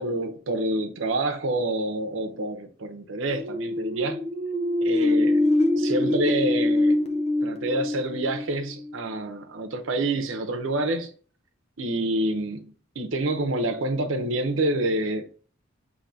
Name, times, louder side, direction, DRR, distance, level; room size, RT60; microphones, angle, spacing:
voice 1, 0.0-4.3 4.8-5.4 5.8-7.0 7.4-11.1 11.8-15.2, right 1 dB, 90° right, 0.8 m, -27 dB
sound 1, 3.3-8.9, left 1 dB, 35° left, 0.6 m, -24 dB
7.0 x 2.8 x 2.7 m
head